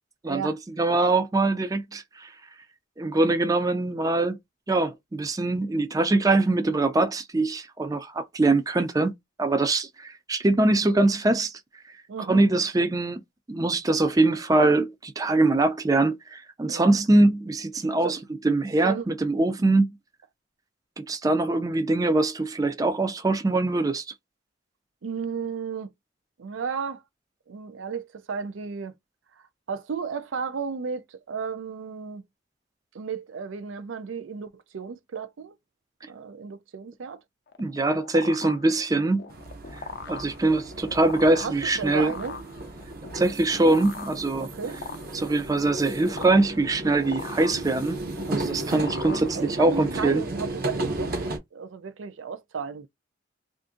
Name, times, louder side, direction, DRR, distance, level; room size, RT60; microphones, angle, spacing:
voice 1, 0.2-2.3 3.0-4.4 4.7-9.1 9.4-11.5 12.3-13.2 13.5-18.2 18.4-19.9 21.0-24.0 37.6-39.2 40.1-42.1 43.1-44.5 45.1-48.0 48.3-50.2, right 2 dB, 20° right, 0.4 m, -23 dB
voice 2, 12.1-12.4 16.7-16.9 18.0-18.2 18.8-19.1 25.0-25.9 26.4-27.0 27.5-28.9 29.4-32.2 32.9-35.6 36.1-37.2 41.4-42.4 44.4-44.8 48.9-52.9, right 6 dB, 85° right, 0.5 m, -34 dB
sound 1, 37.5-49.9, left 5 dB, 60° left, 0.5 m, -41 dB
sound 2, 39.3-51.4, right 1 dB, 50° right, 0.7 m, -34 dB
2.5 x 2.5 x 3.7 m
head